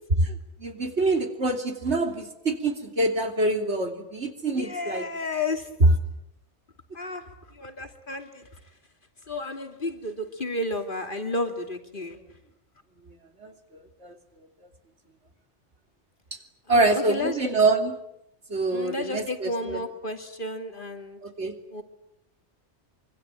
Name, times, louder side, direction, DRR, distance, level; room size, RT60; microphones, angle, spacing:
voice 1, 0.6-5.1 5.8-5.9 13.4-14.1 16.7-18.0 18.5-19.8 21.2-21.6, right 2 dB, 70° right, 5 dB, 3.3 m, -25 dB
voice 2, 4.5-5.7 6.9-8.6 9.3-12.2 16.7-17.4 18.7-21.2 21.7-21.8, left 2 dB, 45° left, 6 dB, 3.0 m, -32 dB
25.0 x 25.0 x 9.0 m, 0.81 s
omnidirectional pair, 1.2 m